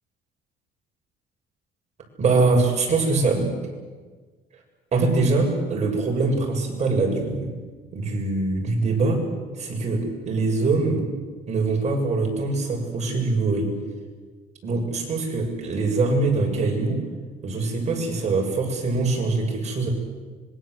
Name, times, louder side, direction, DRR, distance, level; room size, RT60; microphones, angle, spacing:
voice 1, 2.2-3.5 4.9-7.6 7.9-9.2 9.6-11.0 11.5-13.7 14.6-17.0 17.4-19.9, right 3 dB, 40° right, 1 dB, 7.3 m, -23 dB
26.0 x 22.5 x 8.2 m, 1.4 s
cardioid pair, 110°, 17 cm